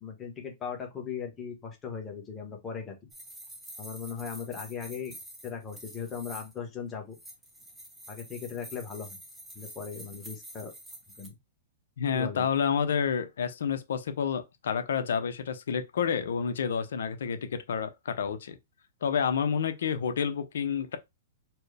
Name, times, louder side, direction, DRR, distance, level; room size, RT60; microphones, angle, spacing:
voice 1, 0.0-2.9 3.8-5.1 5.4-7.2 8.1-9.2 9.5-10.7 11.2-11.3 12.1-12.4, left 6 dB, 15° left, 1.1 m, -38 dB
sound 1, 3.1-6.6 7.1-11.3, right 1 dB, 5° right, 0.8 m, -47 dB
voice 2, 12.0-18.6 19.0-21.0, left 7 dB, 80° left, 0.7 m, -29 dB
4.4 x 2.1 x 3.4 m
hypercardioid pair, 155°, 0 cm